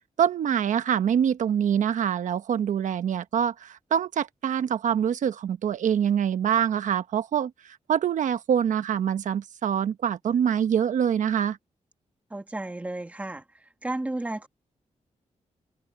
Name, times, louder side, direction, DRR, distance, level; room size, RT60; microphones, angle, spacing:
voice 1, 0.2-7.5 7.9-11.6, right 8 dB, 85° right, 1.0 m, -25 dB
voice 2, 12.3-13.4 13.8-14.5, right 2 dB, 10° right, 1.4 m, -32 dB
wide cardioid pair, 165°, 13 cm